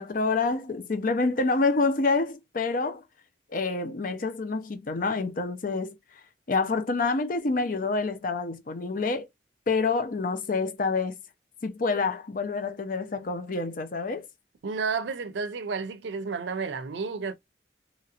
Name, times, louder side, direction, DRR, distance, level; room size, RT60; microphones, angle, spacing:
voice 1, 0.0-3.0 3.5-6.0 6.5-9.3 9.7-11.2 11.6-14.2, left 3 dB, 50° left, 0.6 m, -27 dB
voice 2, 14.6-17.3, right 4 dB, 80° right, 0.5 m, -31 dB
2.9 x 2.8 x 2.4 m
head